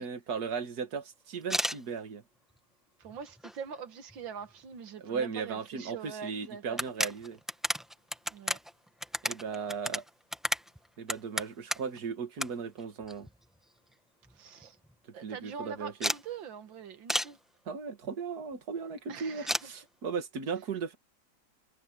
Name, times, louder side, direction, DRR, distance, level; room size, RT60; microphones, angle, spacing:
voice 1, 0.0-2.2 5.0-7.4 9.2-10.0 11.0-13.3 15.2-16.1 17.7-20.9, right 6 dB, 55° right, 2.2 m, -36 dB
sound 1, 1.4-1.8 2.5-2.6 3.0-3.8 4.1-4.2 4.4-4.5 5.9-6.0 6.3-6.4 6.7-12.0 12.4-12.5 12.8-13.6 13.9-14.0 14.3-14.4 14.6-14.9 16.0-16.2 17.1-17.3 19.5-19.7, equal, ahead, 0.4 m, -33 dB
voice 2, 3.0-6.8 8.3-8.6 14.3-14.8 15.1-17.4 19.1-19.7, right 6 dB, 75° right, 2.2 m, -43 dB
omnidirectional pair, 2.1 m